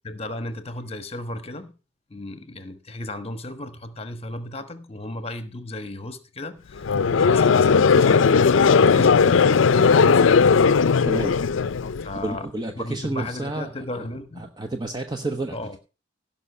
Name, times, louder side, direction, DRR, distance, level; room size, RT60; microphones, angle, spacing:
voice 1, 0.0-1.7 2.1-10.2 12.0-12.5 12.8-14.5 15.5-15.8, left 1 dB, 30° left, 1.2 m, -35 dB
Conversation / Crowd, 6.8-12.1, left 5 dB, 85° left, 0.5 m, -17 dB
voice 2, 11.1-11.4 12.2-13.7 14.0-14.1 14.4-15.8, right 2 dB, 20° right, 0.9 m, -30 dB
16.5 x 5.7 x 5.5 m
head